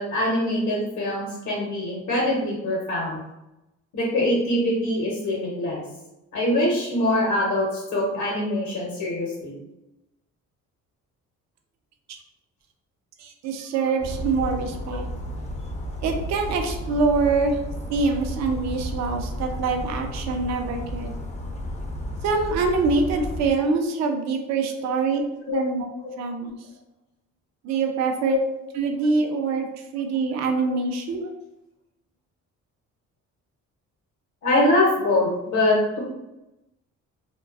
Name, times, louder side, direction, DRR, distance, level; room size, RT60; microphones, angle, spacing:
voice 1, 0.0-3.2 3.9-5.8 6.3-9.5 14.9-15.0 25.5-25.6 28.2-28.4 30.6-30.7 34.4-36.0, left 1 dB, 70° left, -4 dB, 0.8 m, -23 dB
voice 2, 13.2-15.1 16.0-17.6 17.9-21.1 22.2-25.2 25.5-25.9 26.2-26.6 27.6-28.4 28.7-29.7 29.9-31.3, right 4 dB, 65° right, 4 dB, 0.4 m, -24 dB
Bird vocalization bird call bird song, 14.0-23.5, equal, 25° left, 0.4 m, -32 dB
2.4 x 2.2 x 2.3 m, 0.94 s
cardioid pair, 90°, 30 cm